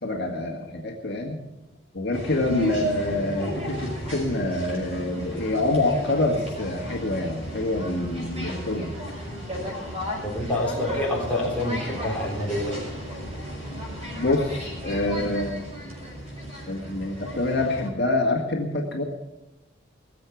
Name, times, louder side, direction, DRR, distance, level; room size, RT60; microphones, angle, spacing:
voice 1, 0.0-1.4 1.9-8.9 14.2-15.6 16.7-19.0, left 2 dB, 55° left, 0 dB, 2.0 m, -26 dB
sound 1, 2.1-17.9, equal, 30° right, 6.0 m, -34 dB
voice 2, 10.2-12.8, left 1 dB, 5° left, -4 dB, 3.8 m, -27 dB
20.5 x 7.7 x 7.2 m, 0.96 s
head